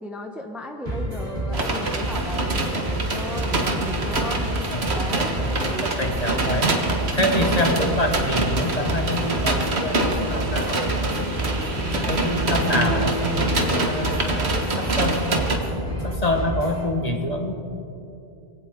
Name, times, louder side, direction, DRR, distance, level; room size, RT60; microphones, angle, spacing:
voice 1, 0.0-4.6 4.9-6.1 11.7-12.2, left 1 dB, ahead, 3 dB, 0.8 m, -36 dB
sound 1, 0.9-16.8, right 1 dB, 45° right, 4.0 m, -29 dB
sound 2, 1.5-15.6, right 2 dB, 85° right, 1.7 m, -25 dB
voice 2, 5.1-5.5 5.8-6.7 7.1-11.3 11.9-15.5 16.0-17.5, left 1 dB, 40° left, 3 dB, 1.6 m, -26 dB
22.5 x 16.5 x 3.7 m, 2.7 s
omnidirectional pair, 1.1 m